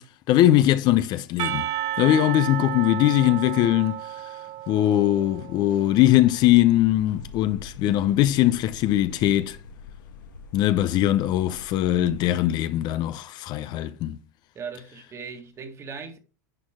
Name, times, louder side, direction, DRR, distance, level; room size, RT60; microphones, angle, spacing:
voice 1, 0.0-1.7 2.0-4.3 4.7-9.6 10.5-14.2, left 13 dB, 45° left, 0.6 m, -21 dB
Percussion, 1.4-6.2, right 13 dB, 50° right, 1.1 m, -32 dB
sound 1, 5.8-12.4, left 4 dB, 80° left, 1.5 m, -45 dB
voice 2, 14.6-16.2, right 5 dB, 30° right, 1.7 m, -38 dB
10.5 x 4.4 x 3.6 m
hypercardioid pair, 105°, 10 cm